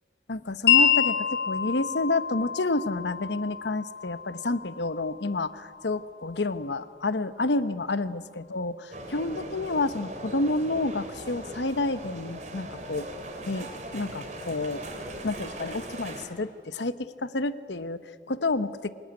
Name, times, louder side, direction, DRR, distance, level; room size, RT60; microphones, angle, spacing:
voice 1, 0.3-13.1 13.5-14.8 15.2-18.9, left 2 dB, 85° left, 13 dB, 1.0 m, -29 dB
Wind chime, 0.7-6.7, left 8 dB, 65° left, 5.3 m, -28 dB
sound 1, 8.9-16.3, right 1 dB, 40° right, 3.4 m, -39 dB
25.5 x 21.0 x 9.7 m, 2.1 s
head